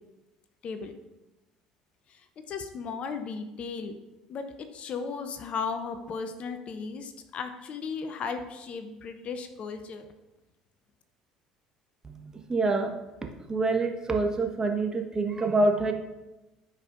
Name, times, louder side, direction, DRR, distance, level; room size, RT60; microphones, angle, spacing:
voice 1, 2.1-4.0 4.3-10.1, left 5 dB, 45° left, 8 dB, 0.8 m, -36 dB
voice 2, 12.0-12.9 13.5-15.9, right 2 dB, 25° right, 2 dB, 1.3 m, -26 dB
13.5 x 5.2 x 2.6 m, 1.0 s
figure-of-eight pair, 60°, 3 cm